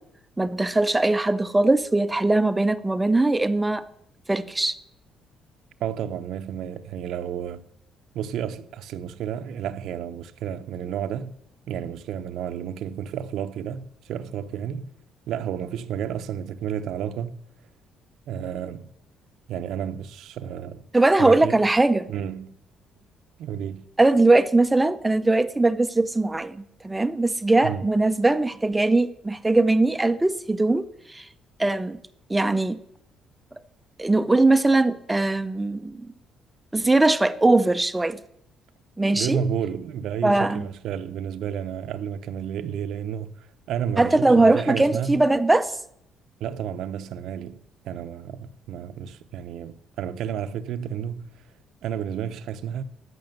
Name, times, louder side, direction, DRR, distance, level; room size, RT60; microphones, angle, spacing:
voice 1, 0.4-3.8 4.3-4.8 20.9-22.1 24.0-31.3 31.6-32.0 32.3-32.8 34.0-36.1 36.7-38.2 39.0-39.4 40.2-40.7 44.0-45.7, right 2 dB, 10° right, 0.5 m, -20 dB
voice 2, 5.8-7.6 8.1-11.4 11.7-14.9 15.3-17.4 18.3-18.9 19.5-20.8 21.2-21.6 22.1-22.6 23.4-23.9 27.6-27.9 39.0-45.2 46.4-51.3 51.8-52.8, right 8 dB, 70° right, 0.8 m, -31 dB
14.5 x 6.1 x 9.2 m
cardioid pair, 165°, 0 cm